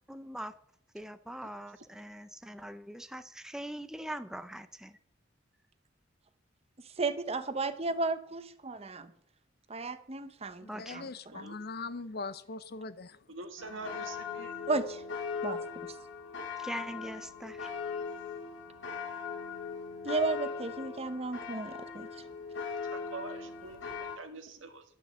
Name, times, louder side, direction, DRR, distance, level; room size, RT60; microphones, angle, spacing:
voice 1, 0.1-0.5 0.9-4.9 10.7-11.0 16.6-17.7, right 1 dB, 5° right, 0.4 m, -42 dB
voice 2, 7.0-9.1 9.7-11.4 14.7-15.0 15.4-15.6 20.0-22.1, right 3 dB, 35° right, 0.9 m, -34 dB
voice 3, 10.6-13.1, left 3 dB, 55° left, 0.7 m, -41 dB
voice 4, 13.3-14.5 22.8-24.8, right 3 dB, 90° right, 1.6 m, -45 dB
sound 1, 13.6-24.2, left 5 dB, 85° left, 1.7 m, -39 dB
12.0 x 6.2 x 7.8 m
head